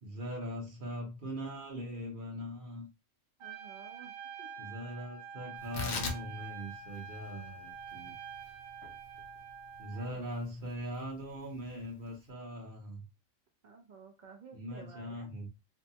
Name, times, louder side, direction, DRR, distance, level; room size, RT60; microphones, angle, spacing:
voice 1, 0.0-2.9 4.6-8.1 9.8-13.1 14.5-15.5, equal, 45° right, -1 dB, 0.9 m, -41 dB
voice 2, 3.4-4.1 4.4-4.5 9.9-10.5 13.6-15.3, right 4 dB, 60° right, 4 dB, 0.5 m, -53 dB
Trumpet, 3.4-10.1, right 6 dB, 90° right, 1.1 m, -46 dB
Tearing, 5.6-12.3, left 5 dB, 65° left, 0.9 m, -43 dB
2.7 x 2.1 x 2.7 m, 0.28 s
omnidirectional pair, 1.3 m